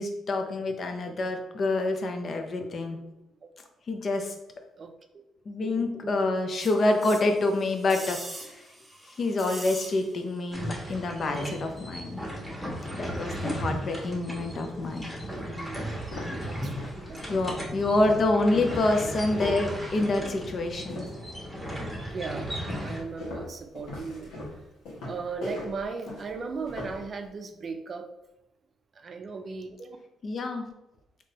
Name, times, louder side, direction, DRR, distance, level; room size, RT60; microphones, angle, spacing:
voice 1, 0.0-3.0 3.9-4.4 5.5-8.7 9.0-12.2 12.9-15.1 17.3-21.0 30.2-30.7, left 2 dB, 50° left, 5 dB, 0.5 m, -27 dB
voice 2, 5.6-6.1 15.2-15.9 16.4-17.2 22.1-22.5 22.8-24.3 25.1-28.1 28.9-30.0, right 4 dB, 45° right, 6 dB, 0.4 m, -37 dB
sound 1, 6.6-10.4 10.7-10.8, right 1 dB, 15° right, 0.7 m, -42 dB
sound 2, 10.5-23.0, equal, 5° left, 1.1 m, -36 dB
sound 3, 15.3-15.4 15.9-21.3 21.7-22.1 22.7-27.1, left 1 dB, 80° left, 1.4 m, -40 dB
3.6 x 2.8 x 2.8 m, 0.92 s
cardioid pair, 90°, 0 cm